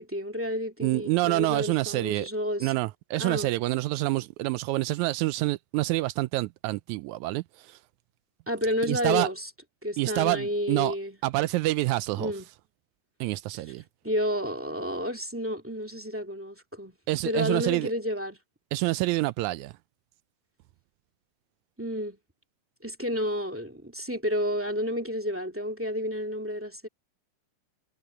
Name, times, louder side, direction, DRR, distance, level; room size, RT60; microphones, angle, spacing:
voice 1, 0.0-2.7 3.2-3.5 8.5-9.5 9.8-11.2 12.2-12.4 14.0-16.9 17.2-18.4 21.8-22.2 22.8-26.9, equal, 5° right, 1.6 m, -30 dB
voice 2, 0.8-2.3 2.6-7.8 8.8-9.3 10.0-10.9 11.2-12.3 13.2-13.8 17.1-17.9 18.7-19.7, right 19 dB, 80° right, 1.8 m, -27 dB
omnidirectional pair, 3.6 m